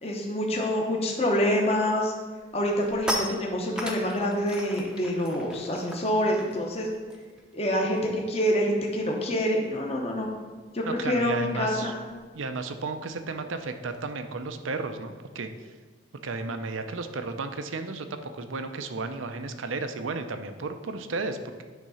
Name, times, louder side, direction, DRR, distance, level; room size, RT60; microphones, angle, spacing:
voice 1, 0.0-2.1 2.5-6.9 7.5-10.3 10.7-12.0, equal, 30° left, -1 dB, 0.9 m, -26 dB
sound 1, 2.4-8.3 8.5-8.8 9.0-14.1, equal, 5° right, 0.6 m, -39 dB
voice 2, 10.8-11.9 12.3-15.5 16.2-21.6, right 3 dB, 85° right, 8 dB, 0.6 m, -33 dB
9.3 x 3.7 x 5.6 m, 1.5 s
head